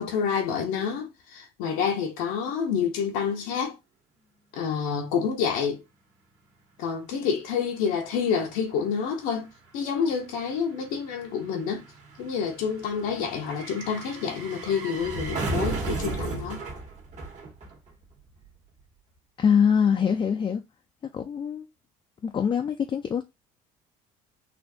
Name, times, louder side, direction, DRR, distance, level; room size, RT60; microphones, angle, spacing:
voice 1, 0.0-3.7 4.5-5.8 6.8-11.8 12.2-16.6, left 6 dB, 80° left, 0.9 m, -28 dB
sound 1, 7.4-7.5 7.7-18.1 18.4-18.5, right 3 dB, 45° right, 1.5 m, -35 dB
voice 2, 19.4-20.6 21.1-21.7 22.2-23.2, left 7 dB, 30° left, 0.5 m, -23 dB
4.3 x 2.6 x 2.7 m
supercardioid pair, 85°, 16 cm